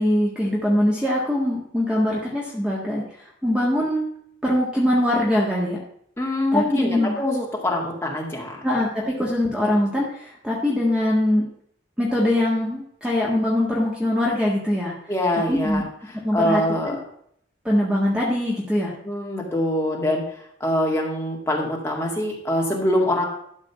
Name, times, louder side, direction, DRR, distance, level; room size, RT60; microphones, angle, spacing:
voice 1, 0.0-3.0 3.4-4.1 4.4-5.8 6.5-7.1 8.6-11.4 12.0-14.9 15.5-15.8 16.2-17.0 17.6-18.9, left 1 dB, 5° right, -4 dB, 1.6 m, -22 dB
voice 2, 6.2-8.6 15.1-17.0 19.0-20.2 20.6-23.2, left 1 dB, 15° left, -2 dB, 2.0 m, -24 dB
12.0 x 4.1 x 7.0 m, 0.67 s
head